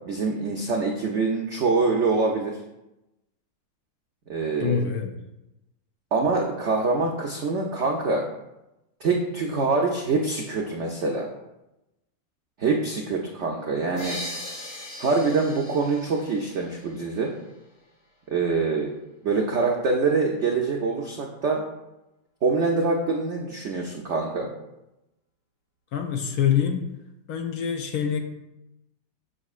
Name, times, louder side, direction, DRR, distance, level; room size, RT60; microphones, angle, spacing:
voice 1, 0.0-2.5 4.3-4.8 6.1-8.2 9.0-11.3 12.6-14.2 15.0-17.3 18.3-18.9 19.2-21.6 22.4-24.5, right 4 dB, 80° right, 1 dB, 0.6 m, -25 dB
voice 2, 4.6-5.2 25.9-26.9 27.3-28.2, left 8 dB, 70° left, 4 dB, 1.0 m, -25 dB
sound 1, 14.0-17.5, left 1 dB, 50° left, 2.9 m, -39 dB
6.8 x 6.3 x 2.4 m, 0.93 s
omnidirectional pair, 2.0 m